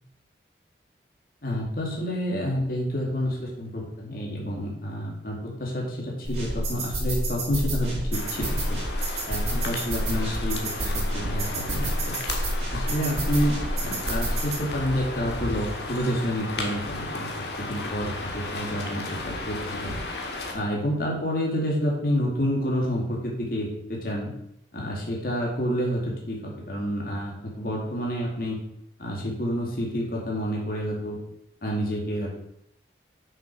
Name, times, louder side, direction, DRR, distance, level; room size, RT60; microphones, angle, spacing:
voice 1, 1.4-8.8 9.3-12.2 12.7-17.3 17.6-20.0 20.5-24.3 24.7-28.6 29.0-31.2 31.6-32.4, equal, 55° left, -2 dB, 2.4 m, -29 dB
sound 1, 6.2-14.6, right 1 dB, 35° right, 3.2 m, -28 dB
sound 2, 8.1-20.5, left 2 dB, 70° left, 1.7 m, -34 dB
7.4 x 6.5 x 6.0 m, 0.77 s
head